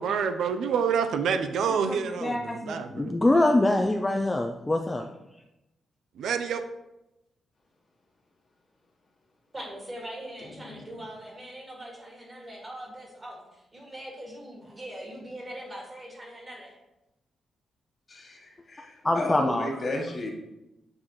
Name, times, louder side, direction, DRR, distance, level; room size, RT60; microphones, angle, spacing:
voice 1, 0.0-3.1 6.2-6.6, right 6 dB, 85° right, 8 dB, 0.4 m, -27 dB
voice 2, 1.7-5.0 19.0-19.7, left 1 dB, 15° left, 3 dB, 0.3 m, -25 dB
voice 3, 9.5-16.8, right 1 dB, 20° right, -2 dB, 1.9 m, -41 dB
voice 4, 10.4-11.0 18.1-20.3, left 1 dB, 35° left, 1 dB, 1.1 m, -34 dB
8.7 x 4.2 x 3.0 m, 0.94 s
cardioid pair, 130°, 0 cm